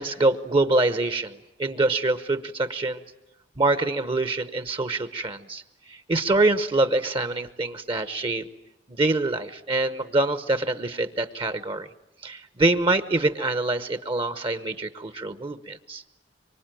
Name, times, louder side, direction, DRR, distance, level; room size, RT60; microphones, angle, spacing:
voice 1, 0.0-3.0 3.6-5.6 5.9-8.5 8.9-11.9 12.2-16.0, right 2 dB, 30° right, 11 dB, 0.9 m, -25 dB
24.5 x 24.0 x 9.1 m, 0.97 s
head